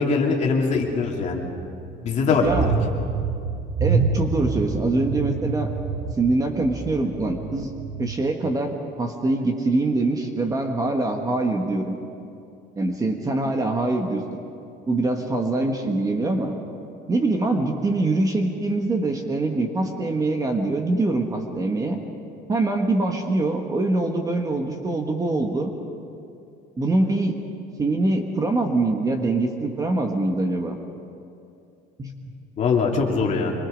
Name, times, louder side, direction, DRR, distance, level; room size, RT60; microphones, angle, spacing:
voice 1, 0.0-1.4 2.0-2.7 32.6-33.5, left 4 dB, 40° left, 0 dB, 2.7 m, -22 dB
sound 1, 0.7-8.2, right 4 dB, 35° right, 0.9 m, -28 dB
voice 2, 3.8-5.7 6.2-7.7 8.0-12.0 12.8-14.2 14.9-16.5 17.1-22.0 22.5-25.7 26.8-27.3 27.8-30.8 32.0-32.1, right 2 dB, 20° right, 3 dB, 1.3 m, -24 dB
25.0 x 22.5 x 5.2 m, 2.6 s
cardioid pair, 160°, 19 cm